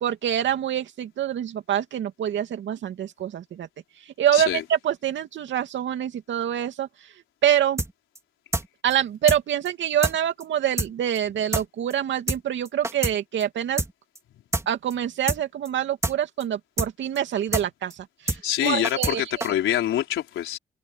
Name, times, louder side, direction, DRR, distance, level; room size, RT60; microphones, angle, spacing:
voice 1, 0.0-3.7 4.2-6.9 7.4-7.8 8.8-13.8 14.7-18.1 18.6-19.4, right 10 dB, 70° right, 2.7 m, -25 dB
voice 2, 4.3-4.6 18.3-20.6, left 12 dB, 80° left, 4.6 m, -25 dB
sound 1, 7.8-8.2 8.5-8.7 8.9-9.0 9.3-9.4 9.7-9.8 10.0-10.2 10.4-10.5 10.8-10.9 11.2-11.3 11.5-11.7 11.9-12.0 12.3-12.4 12.7-13.2 13.4-13.5 13.8-13.9 14.2-14.3 14.5-14.7 14.9-15.0 15.3-15.4 15.7-15.8 16.0-16.2 16.4-16.5 16.8-16.9 17.2-17.3 17.5-17.7 17.9-18.0 18.3-18.4 18.7-19.2 19.4-19.5, right 2 dB, 15° right, 2.9 m, -26 dB
cardioid pair, 90°, 20 cm